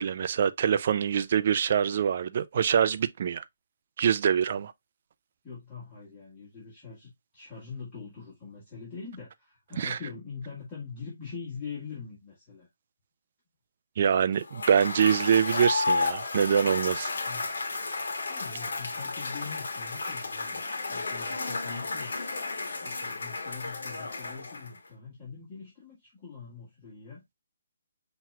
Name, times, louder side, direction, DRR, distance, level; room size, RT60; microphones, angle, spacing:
voice 1, 0.0-3.4 4.0-4.7 9.8-10.0 14.0-17.1, right 8 dB, 40° right, 0.3 m, -24 dB
voice 2, 5.4-12.7 17.2-17.5 18.3-22.1 22.8-27.2, left 5 dB, 15° left, 1.8 m, -43 dB
Cheering / Applause / Crowd, 14.4-24.9, left 3 dB, 80° left, 1.3 m, -32 dB
5.8 x 3.0 x 2.3 m
hypercardioid pair, 170°, 0 cm